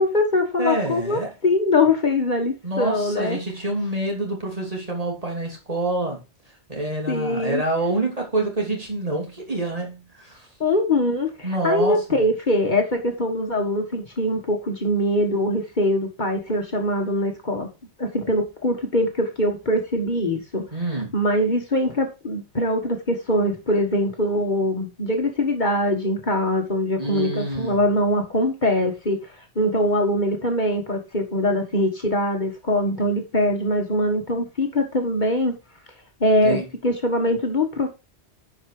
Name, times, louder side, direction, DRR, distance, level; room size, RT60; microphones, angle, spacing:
voice 1, 0.0-3.4 7.1-7.6 10.6-17.7 18.0-20.6 21.1-29.2 29.6-35.5 36.2-37.9, left 1 dB, 45° left, 1.8 m, -22 dB
voice 2, 0.6-1.3 2.6-6.2 6.7-10.5 11.4-12.2 20.7-21.2 27.0-27.8 36.4-36.7, right 2 dB, 35° right, 3.1 m, -27 dB
11.0 x 5.0 x 4.8 m
omnidirectional pair, 1.1 m